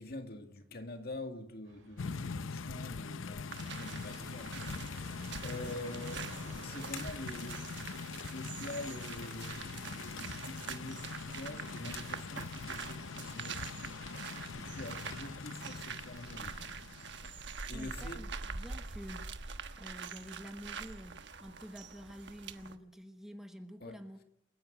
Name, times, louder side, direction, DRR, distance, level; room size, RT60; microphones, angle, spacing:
voice 1, 0.0-7.7 8.3-16.6 17.2-17.3 17.7-18.2 23.8-24.0, left 2 dB, 50° left, 2.1 m, -46 dB
Fixed-wing aircraft airplane, 1.6-20.0, right 2 dB, 80° right, 5.9 m, -58 dB
sound 1, 2.0-17.5, left 5 dB, 90° left, 0.7 m, -43 dB
sound 2, 3.5-22.8, right 5 dB, 60° right, 1.3 m, -45 dB
voice 2, 17.7-24.2, equal, ahead, 1.2 m, -49 dB
28.5 x 10.5 x 9.1 m
head